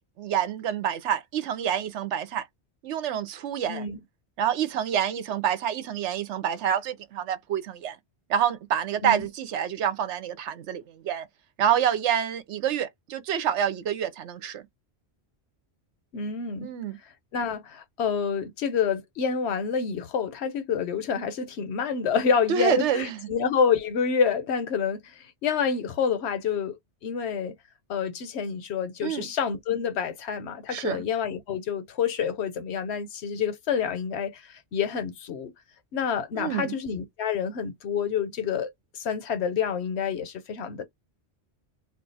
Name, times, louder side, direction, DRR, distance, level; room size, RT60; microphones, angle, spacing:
voice 1, 0.2-2.5 2.8-3.9 4.4-8.0 8.3-11.3 11.6-14.6 16.6-17.0 22.5-23.2 29.0-29.3 30.7-31.0 36.4-36.8, right 9 dB, 85° right, 1.0 m, -27 dB
voice 2, 3.7-4.0 9.0-9.3 16.1-16.7 17.3-27.5 27.9-35.5 35.9-40.8, left 6 dB, 70° left, 1.0 m, -28 dB
2.4 x 2.3 x 3.9 m
omnidirectional pair, 1.2 m